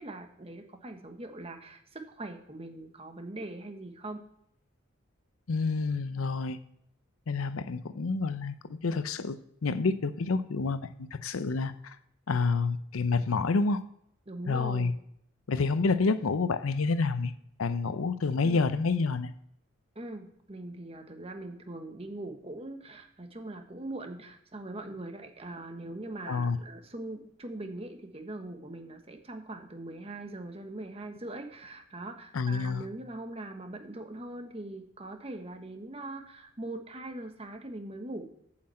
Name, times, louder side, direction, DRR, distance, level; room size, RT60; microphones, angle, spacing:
voice 1, 0.0-4.2 14.3-14.9 18.4-18.7 19.9-38.2, right 2 dB, 30° right, 5 dB, 1.2 m, -41 dB
voice 2, 5.5-6.6 7.3-12.0 12.3-13.8 14.5-14.9 15.5-17.3 17.6-19.3 26.3-26.6 32.3-32.8, left 4 dB, 80° left, 12 dB, 0.6 m, -28 dB
8.6 x 5.8 x 7.6 m, 0.72 s
head